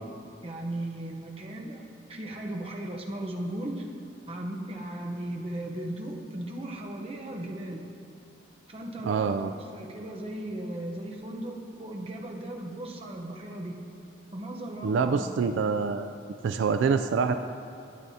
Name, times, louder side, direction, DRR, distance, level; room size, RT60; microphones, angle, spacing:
voice 1, 0.4-1.8 2.1-3.9 4.3-7.8 8.7-9.4 9.7-13.8 14.3-15.2, right 1 dB, 30° right, 0 dB, 0.8 m, -36 dB
voice 2, 9.0-9.5 14.8-16.1 16.4-17.3, right 5 dB, 80° right, 9 dB, 0.3 m, -26 dB
12.5 x 8.9 x 2.8 m, 2.6 s
head